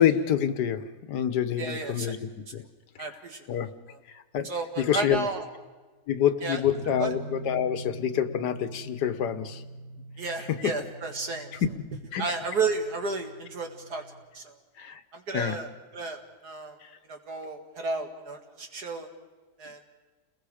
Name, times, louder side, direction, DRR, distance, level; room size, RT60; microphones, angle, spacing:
voice 1, 0.0-2.2 2.5-2.6 3.5-3.7 4.1-4.5 4.8-5.3 6.1-9.6 12.1-12.2 14.8-15.0 15.3-15.6 16.8-16.9, left 9 dB, 90° left, 11 dB, 1.6 m, -27 dB
voice 2, 1.6-2.2 3.0-3.4 3.9-4.0 4.4-5.4 6.4-6.6 7.0-7.1 10.2-11.5 12.2-14.0 14.3-14.5 15.1-16.8 17.1-19.1 19.6-19.9, right 4 dB, 70° right, 4 dB, 2.6 m, -32 dB
sound 1, 6.6-14.2, right 2 dB, 45° left, 8.4 m, -43 dB
29.5 x 21.0 x 5.0 m, 1.3 s
omnidirectional pair, 1.7 m